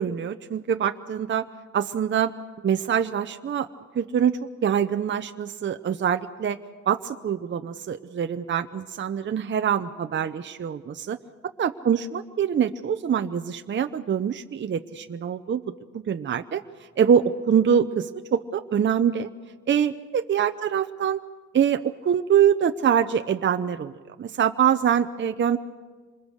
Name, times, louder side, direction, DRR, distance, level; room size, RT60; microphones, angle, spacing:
voice 1, 0.0-1.5 1.7-2.3 2.6-3.7 3.9-6.6 6.9-11.2 11.6-16.6 17.0-19.3 19.7-21.2 21.5-23.9 24.2-25.6, right 8 dB, 40° right, 8 dB, 0.7 m, -24 dB
26.0 x 21.0 x 6.5 m, 1.4 s
cardioid pair, 90°, 30 cm